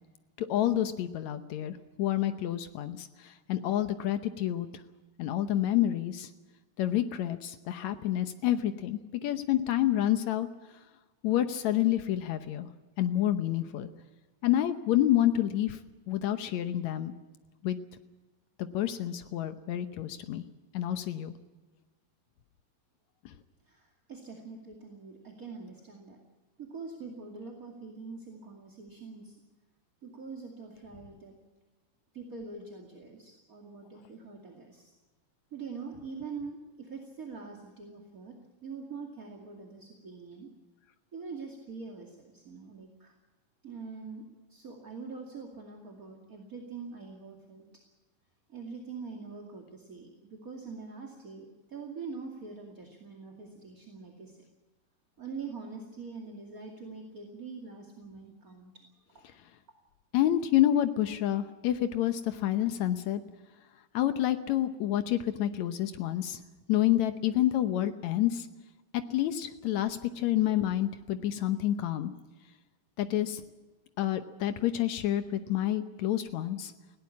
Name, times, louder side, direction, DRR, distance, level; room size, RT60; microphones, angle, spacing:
voice 1, 0.4-4.7 5.2-6.3 6.8-10.5 11.2-12.7 13.0-13.9 14.4-15.8 16.1-17.1 17.6-17.8 18.6-20.4 20.7-21.3 60.1-63.2 63.9-66.4 66.7-68.5 68.9-72.1 73.0-73.4 74.0-76.7, left 12 dB, 80° left, 10 dB, 1.6 m, -28 dB
voice 2, 23.7-26.2 26.6-29.3 30.0-31.4 32.1-34.9 35.5-38.3 38.6-40.5 41.1-43.1 43.6-44.2 44.5-47.7 48.5-54.4 55.2-58.7, right 4 dB, 30° right, 0 dB, 2.1 m, -44 dB
20.0 x 17.5 x 8.6 m, 1.2 s
omnidirectional pair, 4.5 m